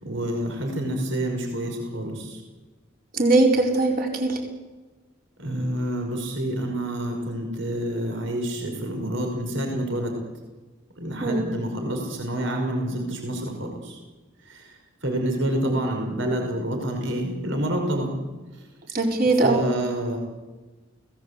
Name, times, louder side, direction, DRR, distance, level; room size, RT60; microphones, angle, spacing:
voice 1, 0.0-2.4 5.4-10.1 11.0-14.0 14.5-14.7 15.0-18.1 19.4-20.2, right 1 dB, 70° right, 3 dB, 5.5 m, -28 dB
voice 2, 3.1-4.4 11.2-11.5 18.9-19.7, right 2 dB, 45° right, 2 dB, 4.9 m, -20 dB
29.5 x 19.0 x 8.4 m, 1.2 s
head